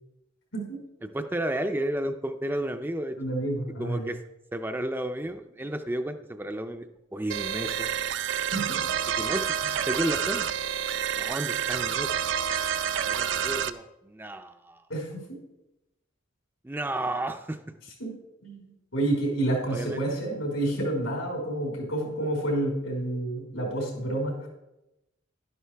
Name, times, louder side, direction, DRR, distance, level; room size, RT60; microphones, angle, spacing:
voice 1, 1.0-3.2 3.8-4.2 4.5-6.9 7.1-7.9 9.2-10.5 11.2-12.1 13.0-14.8 16.6-17.6 19.7-20.0, right 1 dB, 10° right, 7 dB, 0.4 m, -32 dB
voice 2, 3.2-4.1 8.5-8.8 14.9-15.2 18.0-18.1 18.4-24.5, right 1 dB, 85° left, -1 dB, 4.8 m, -29 dB
sound 1, 7.3-13.7, right 8 dB, 65° right, 0.5 m, -28 dB
12.0 x 11.0 x 3.4 m, 0.91 s
head